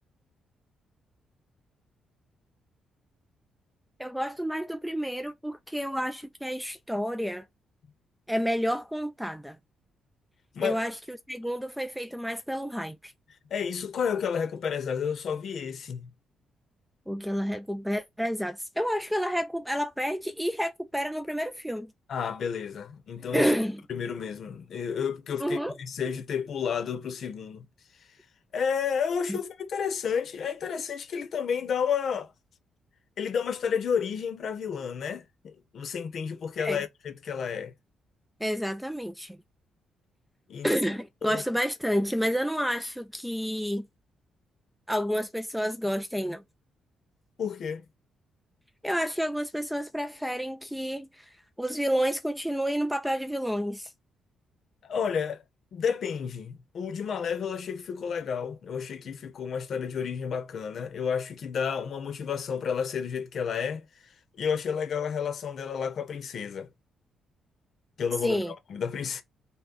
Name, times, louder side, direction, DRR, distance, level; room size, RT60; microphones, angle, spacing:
voice 1, 4.0-7.5 8.3-9.6 10.6-13.1 17.1-21.9 23.3-23.8 25.4-25.7 29.3-29.4 36.6-36.8 38.4-39.4 40.6-43.9 44.9-46.4 48.8-53.9 68.2-68.5, equal, ahead, 0.3 m, -30 dB
voice 2, 13.5-16.1 22.1-23.5 23.9-27.7 28.5-32.3 33.2-37.7 40.5-40.7 41.2-41.4 47.4-47.8 54.8-55.4 55.7-63.8 64.4-66.7 68.0-68.4 68.7-69.2, left 7 dB, 50° left, 0.8 m, -31 dB
5.7 x 2.2 x 3.9 m
cardioid pair, 165°, 0 cm